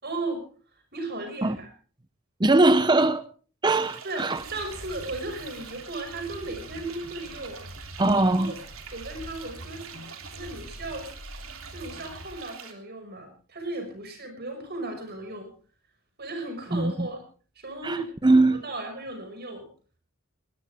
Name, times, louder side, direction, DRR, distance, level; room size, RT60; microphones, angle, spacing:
voice 1, 0.0-0.4 0.9-1.7 4.0-7.6 8.4-8.5 8.9-9.8 10.3-11.1 11.7-15.5 16.2-17.2 17.6-18.0 18.3-19.6, right 2 dB, 50° right, 5.8 m, -35 dB
voice 2, 2.4-3.2 3.6-4.4 8.0-8.5 16.7-17.1 17.8-18.6, right 2 dB, 20° right, 0.8 m, -21 dB
sound 1, 3.7-12.7, right 7 dB, 85° right, 3.1 m, -45 dB
sound 2, 4.4-12.4, equal, 70° right, 3.6 m, -45 dB
20.5 x 19.5 x 3.6 m
head